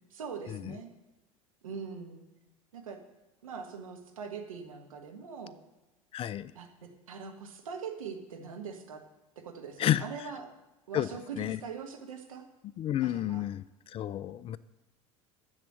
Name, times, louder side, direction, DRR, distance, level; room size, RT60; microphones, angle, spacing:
voice 1, 0.1-0.9 1.6-2.2 2.7-3.0 3.4-5.5 6.5-9.0 9.4-10.5 10.9-12.4 13.0-13.4, right 6 dB, 75° right, 4 dB, 1.4 m, -42 dB
voice 2, 6.1-6.5 9.8-10.0 10.9-11.1 11.4-11.6 12.8-14.6, left 12 dB, 35° left, 18 dB, 0.4 m, -31 dB
7.4 x 7.3 x 7.8 m, 1.0 s
figure-of-eight pair, 75°, 18 cm